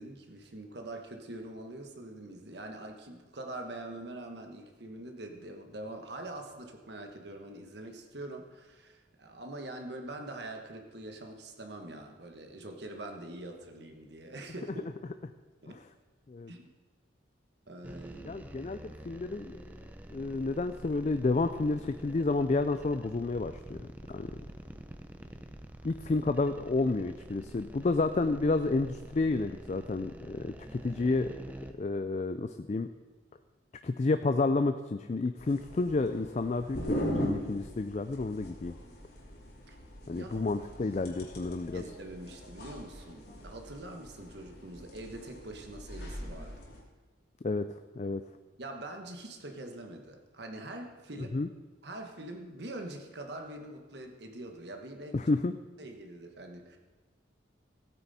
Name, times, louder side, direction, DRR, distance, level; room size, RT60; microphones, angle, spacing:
voice 1, 0.0-14.8 15.6-15.8 16.5-16.7 17.7-18.3 26.2-26.3 39.7-39.8 40.0-40.4 41.7-46.5 48.6-51.4 51.8-55.2 55.8-56.8, right 1 dB, 60° right, 4 dB, 1.3 m, -44 dB
sound 1, 17.8-31.7, right 1 dB, 10° right, 0.6 m, -47 dB
voice 2, 18.2-19.6 20.1-24.3 25.8-31.3 31.8-32.9 33.8-38.8 40.1-41.8 47.4-47.6 48.0-48.2 51.3-51.5 55.1-55.5, left 3 dB, 35° left, 9 dB, 0.4 m, -30 dB
sound 2, 35.4-46.8, equal, 55° left, 2.7 m, -40 dB
16.0 x 9.1 x 4.2 m, 1.3 s
head